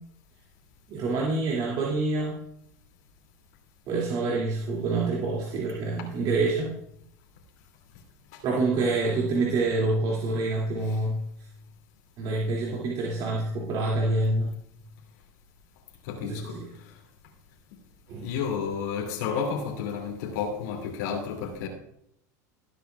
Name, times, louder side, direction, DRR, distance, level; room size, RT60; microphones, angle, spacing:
voice 1, 0.9-2.4 3.9-6.7 8.4-11.2 12.2-14.5 16.2-16.7 18.1-18.3, right 3 dB, 50° right, -4 dB, 2.5 m, -27 dB
voice 2, 16.1-16.6 18.2-21.7, left 6 dB, 75° left, -1 dB, 2.6 m, -31 dB
19.0 x 8.4 x 2.4 m, 0.74 s
supercardioid pair, 110°, 9 cm